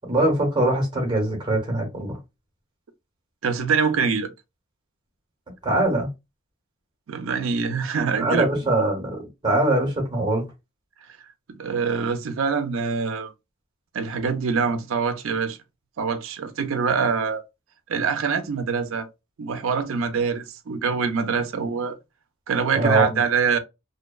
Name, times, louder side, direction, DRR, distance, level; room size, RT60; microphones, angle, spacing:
voice 1, 0.1-2.2 5.6-6.1 8.2-10.5 22.7-23.2, right 2 dB, 20° right, 1.0 m, -22 dB
voice 2, 3.4-4.3 7.1-8.5 11.5-13.3 13.9-15.6 16.0-17.4 17.9-19.1 19.4-22.0 22.5-23.6, right 5 dB, 65° right, 0.4 m, -24 dB
2.7 x 2.1 x 2.2 m
head